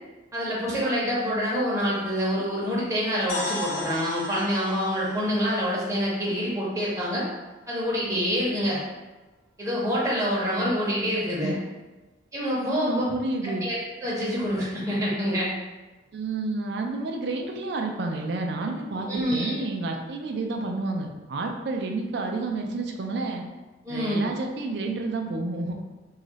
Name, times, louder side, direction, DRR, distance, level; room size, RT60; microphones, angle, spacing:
voice 1, 0.3-7.2 7.7-8.8 9.6-11.5 12.3-13.0 13.6-15.5 19.1-19.5 23.8-24.2, equal, 15° right, -7 dB, 0.6 m, -26 dB
sound 1, 3.3-7.2, left 1 dB, 90° left, 0.7 m, -36 dB
voice 2, 11.3-11.6 12.7-13.7 16.1-23.4 23.9-25.8, right 3 dB, 60° right, 2 dB, 0.4 m, -30 dB
2.4 x 2.0 x 3.9 m, 1.2 s
head